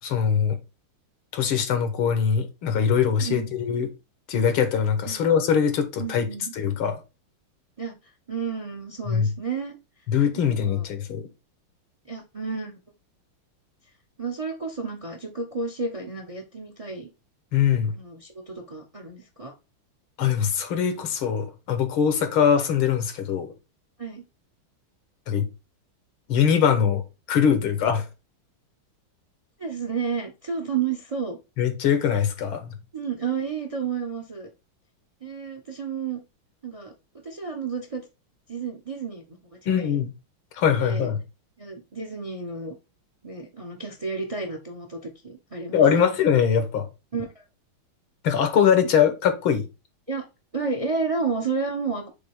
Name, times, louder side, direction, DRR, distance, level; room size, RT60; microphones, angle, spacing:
voice 1, 0.0-0.6 1.3-3.9 4.3-6.3 6.5-7.0 9.1-9.3 10.1-11.3 17.5-17.9 20.2-23.5 25.3-25.5 26.3-27.0 27.3-28.1 31.6-32.7 39.7-40.1 40.5-41.2 45.7-46.9 48.2-49.6, left 7 dB, 80° left, 2.0 m, -22 dB
voice 2, 3.2-3.6 5.0-5.2 6.0-6.5 7.8-7.9 8.3-9.8 10.3-10.8 12.1-12.7 14.2-17.1 17.9-19.5 24.0-24.2 29.6-31.4 32.9-34.5 35.2-36.2 36.6-36.9 37.2-38.0 38.5-39.2 39.7-40.0 40.8-41.1 41.6-42.7 43.2-45.8 47.1-47.4 50.1-50.2 50.5-52.1, right 5 dB, 25° right, 0.9 m, -31 dB
7.8 x 3.7 x 3.7 m
omnidirectional pair, 2.3 m